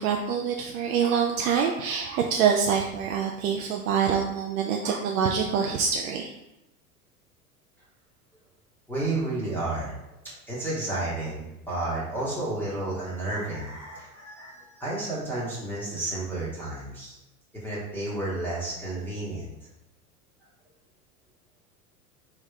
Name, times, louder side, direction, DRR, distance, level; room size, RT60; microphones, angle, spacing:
voice 1, 0.0-6.3, right 7 dB, 65° right, 2 dB, 0.5 m, -25 dB
voice 2, 8.9-9.9 10.2-17.1 17.6-19.5, right 2 dB, 5° left, -9 dB, 1.3 m, -31 dB
3.4 x 3.4 x 2.3 m, 0.92 s
figure-of-eight pair, 80°, 46 cm